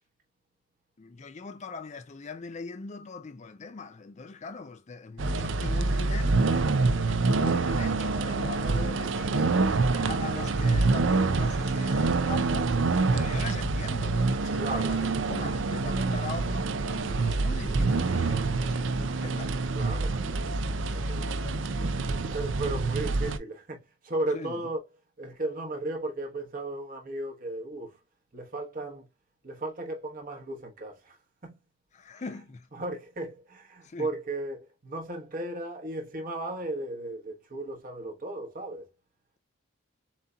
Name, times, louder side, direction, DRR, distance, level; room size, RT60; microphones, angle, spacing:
voice 1, 1.0-6.4 6.9-12.7 13.1-19.7 20.8-22.2 24.3-24.7 31.9-32.7 33.8-34.1, left 4 dB, 35° left, 0.4 m, -41 dB
sound 1, 5.2-23.4, right 3 dB, 65° right, 0.5 m, -26 dB
voice 2, 14.6-15.0 19.1-19.2 19.7-21.3 22.3-24.8 25.2-27.9 28.3-29.1 29.4-31.2 31.4-31.6 32.7-38.9, right 2 dB, 40° right, 1.2 m, -35 dB
7.2 x 2.8 x 2.4 m
head